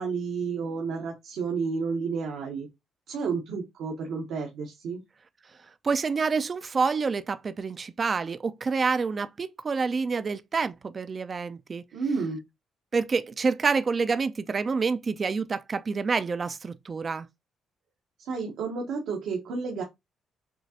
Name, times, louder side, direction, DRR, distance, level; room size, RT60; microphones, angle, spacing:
voice 1, 0.0-2.7 3.1-5.0 11.9-12.4 18.2-19.8, right 5 dB, 80° right, 1.1 m, -31 dB
voice 2, 5.8-11.8 12.9-17.3, right 4 dB, 40° right, 0.4 m, -27 dB
6.1 x 2.4 x 2.8 m
cardioid pair, 90°, 0 cm